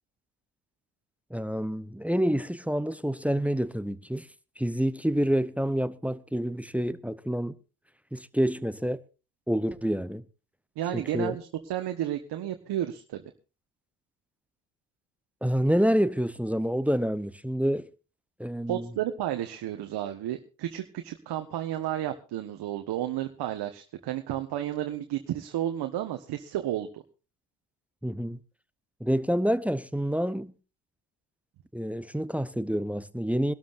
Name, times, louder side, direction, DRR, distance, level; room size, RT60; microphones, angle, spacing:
voice 1, 1.3-4.3 4.6-7.5 8.1-9.0 9.5-10.2 10.9-11.4 15.4-17.9 18.4-18.9 28.0-28.4 29.0-30.5 31.7-33.5, equal, 5° right, 0.8 m, -28 dB
voice 2, 10.8-13.2 18.7-27.0, right 12 dB, 60° right, 1.5 m, -32 dB
24.0 x 13.0 x 2.6 m
hypercardioid pair, 60°, 45 cm